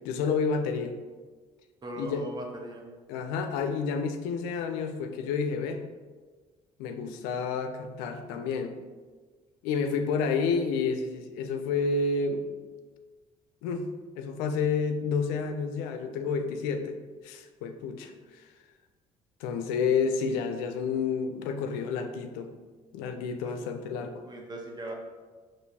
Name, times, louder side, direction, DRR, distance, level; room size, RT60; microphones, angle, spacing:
voice 1, 0.0-1.0 2.0-2.2 3.1-5.8 6.8-8.7 9.6-12.5 13.6-13.9 14.1-18.5 19.4-22.5 22.9-24.2, left 5 dB, 90° left, 7 dB, 0.4 m, -30 dB
voice 2, 1.8-2.9 23.4-23.5 24.2-24.9, right 1 dB, 30° right, 1 dB, 0.8 m, -39 dB
4.3 x 3.0 x 2.7 m, 1.4 s
supercardioid pair, 75°, 15 cm